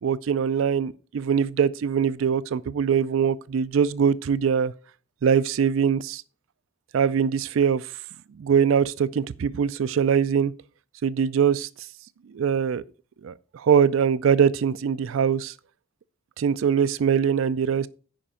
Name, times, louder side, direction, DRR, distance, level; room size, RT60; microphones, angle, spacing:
voice 1, 0.0-4.7 5.2-6.2 6.9-7.9 8.4-10.5 11.0-11.7 12.3-12.8 13.2-15.5 16.4-17.9, right 7 dB, 75° right, 0.4 m, -22 dB
10.0 x 5.1 x 5.5 m
head